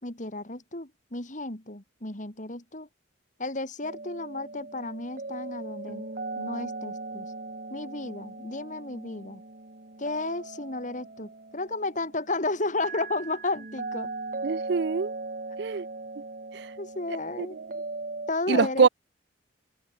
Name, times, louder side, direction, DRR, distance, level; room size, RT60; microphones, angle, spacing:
voice 1, 0.0-2.9 3.4-6.1 6.4-7.3 7.7-9.4 10.0-14.1 16.8-17.6 18.3-18.9, left 2 dB, 40° left, 3.3 m, -33 dB
sound 1, 3.8-18.3, right 3 dB, 50° right, 1.7 m, -39 dB
voice 2, 14.4-15.1 15.6-15.9 16.5-16.7 17.4-17.7 18.5-18.9, right 5 dB, 65° right, 0.5 m, -24 dB
head